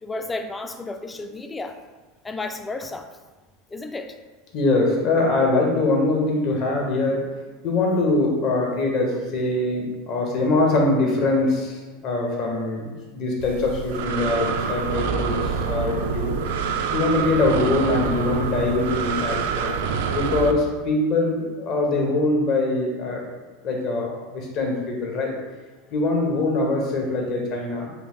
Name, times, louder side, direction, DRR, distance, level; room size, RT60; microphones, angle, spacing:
voice 1, 0.0-1.8 2.2-3.1 3.7-4.2, left 2 dB, 15° left, 7 dB, 0.3 m, -32 dB
voice 2, 4.5-7.2 7.6-16.3 16.9-19.8 20.1-23.2 23.6-25.3 25.9-27.9, left 2 dB, 50° left, 0 dB, 0.9 m, -23 dB
Breathing, 13.4-20.5, right 6 dB, 75° right, 0.3 m, -26 dB
3.5 x 2.4 x 3.5 m, 1.2 s
supercardioid pair, 110°, 0 cm